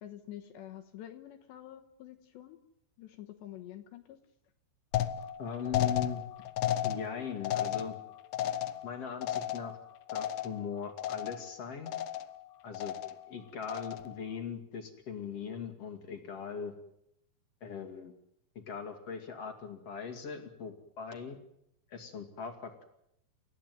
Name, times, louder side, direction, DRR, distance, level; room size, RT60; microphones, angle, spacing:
voice 1, 0.0-2.6 3.0-4.2, left 12 dB, 70° left, 5 dB, 3.1 m, -47 dB
sound 1, 4.9-10.7 11.0-11.6 11.9-12.4 12.7-13.3 13.6-14.2, left 11 dB, 85° left, 2.0 m, -34 dB
voice 2, 5.4-6.2 6.8-8.0 8.8-9.8 10.1-11.9 12.6-12.9 13.3-16.7 17.6-18.1 18.7-21.4 21.9-22.9, left 6 dB, 40° left, 5 dB, 2.5 m, -40 dB
30.0 x 16.0 x 9.4 m, 0.78 s
omnidirectional pair, 5.7 m